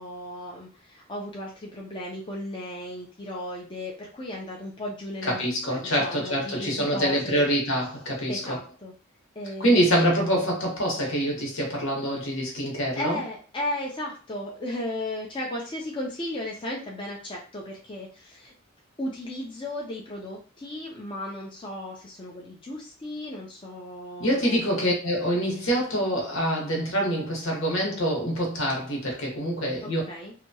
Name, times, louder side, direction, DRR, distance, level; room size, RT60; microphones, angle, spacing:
voice 1, 0.0-7.5 8.3-8.9 9.4-10.4 13.0-18.5 19.0-24.6 29.8-30.3, left 1 dB, 25° left, -2 dB, 0.5 m, -35 dB
voice 2, 5.3-8.6 9.6-13.2 24.2-30.0, equal, 75° left, -1 dB, 1.1 m, -25 dB
2.9 x 2.2 x 2.7 m, 0.36 s
head